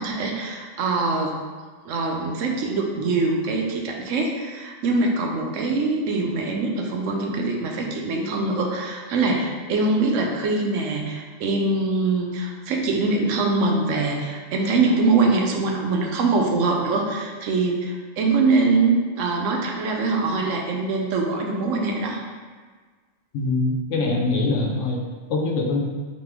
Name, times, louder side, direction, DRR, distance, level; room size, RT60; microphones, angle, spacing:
voice 1, 0.0-1.3 1.8-22.2, right 3 dB, 90° right, 1 dB, 1.0 m, -23 dB
voice 2, 23.3-25.0 25.3-25.8, left 2 dB, 75° left, 0 dB, 1.0 m, -23 dB
4.1 x 3.0 x 3.4 m, 1.5 s
omnidirectional pair, 1.3 m